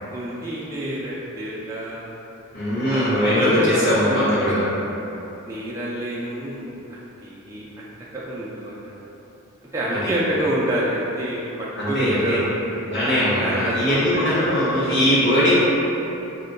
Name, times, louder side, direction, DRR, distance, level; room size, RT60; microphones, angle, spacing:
voice 1, 0.1-2.1 2.9-4.5 5.5-7.9 8.1-9.1 9.7-12.6 13.4-14.6, right 1 dB, 15° right, -7 dB, 0.3 m, -28 dB
voice 2, 2.5-4.6 11.8-12.4 12.9-15.6, equal, 50° left, -12 dB, 1.4 m, -20 dB
4.4 x 2.1 x 3.8 m, 3.0 s
head